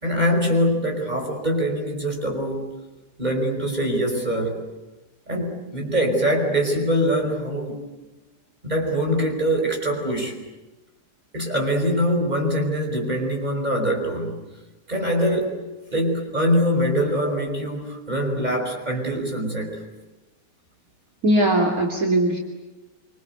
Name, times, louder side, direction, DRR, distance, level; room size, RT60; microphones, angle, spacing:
voice 1, 0.0-2.6 3.2-4.6 5.3-7.8 8.6-10.3 11.3-14.4 14.9-15.6 15.9-19.8, equal, 25° right, 2 dB, 5.6 m, -23 dB
voice 2, 21.2-22.4, right 1 dB, 55° right, 0 dB, 3.2 m, -19 dB
26.5 x 26.5 x 8.1 m, 1.1 s
omnidirectional pair, 1.8 m